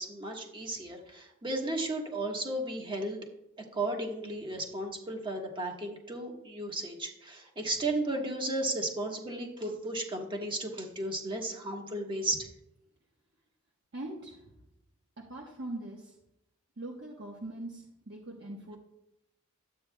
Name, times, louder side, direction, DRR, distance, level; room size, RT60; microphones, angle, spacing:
voice 1, 0.0-3.2 3.6-12.5, right 2 dB, 25° right, 1 dB, 1.4 m, -34 dB
voice 2, 13.9-14.4 15.3-16.2 16.8-18.8, right 1 dB, 55° right, -2 dB, 1.2 m, -41 dB
12.5 x 8.6 x 2.3 m, 0.86 s
head